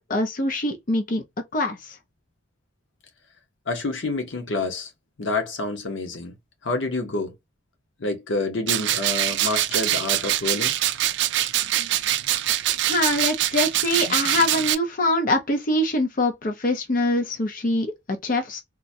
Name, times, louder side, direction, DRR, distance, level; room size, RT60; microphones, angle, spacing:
voice 1, 0.1-1.2 1.5-1.8 12.9-18.6, left 1 dB, 45° left, 0.6 m, -24 dB
voice 2, 3.7-4.9 5.2-6.3 6.6-7.3 8.0-10.7, left 2 dB, 85° left, 0.8 m, -28 dB
sound 1, 8.7-14.7, right 13 dB, 65° right, 0.3 m, -24 dB
3.6 x 2.1 x 2.7 m
head